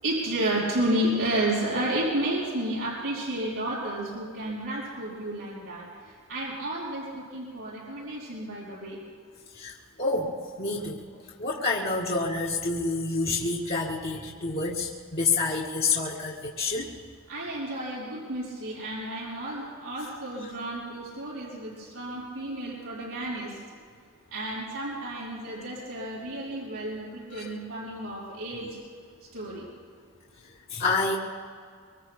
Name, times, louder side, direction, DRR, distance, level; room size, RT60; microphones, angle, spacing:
voice 1, 0.0-5.9 6.3-9.0 17.3-23.6 24.3-28.8 29.3-29.7, right 1 dB, 90° right, -8 dB, 5.3 m, -31 dB
voice 2, 9.5-10.3 10.6-11.0 11.4-16.9 27.3-27.4 28.6-28.7 30.7-31.2, left 3 dB, 45° left, -5 dB, 2.1 m, -28 dB
25.5 x 25.5 x 2.2 m, 2.1 s
head